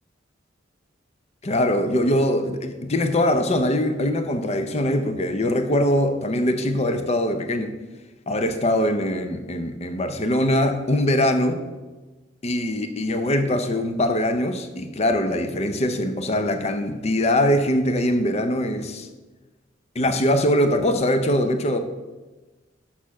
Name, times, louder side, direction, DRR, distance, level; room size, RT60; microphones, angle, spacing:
voice 1, 1.4-7.8 8.3-11.6 12.4-19.1 20.0-21.8, left 1 dB, 35° left, 8 dB, 0.6 m, -22 dB
6.6 x 5.7 x 6.1 m, 1.2 s
head